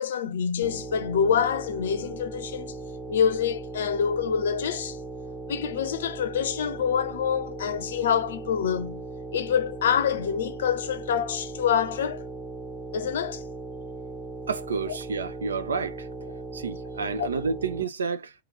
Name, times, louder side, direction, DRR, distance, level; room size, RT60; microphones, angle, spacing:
voice 1, 0.0-2.7 3.1-5.0 5.5-9.1 9.3-12.2 12.9-13.4 17.2-17.3, left 8 dB, 60° left, 0.6 m, -26 dB
sound 1, 0.6-17.8, right 2 dB, ahead, 0.7 m, -38 dB
voice 2, 14.5-16.1 16.5-18.3, right 5 dB, 70° right, 0.6 m, -30 dB
3.9 x 3.1 x 3.6 m
figure-of-eight pair, 90°, 0 cm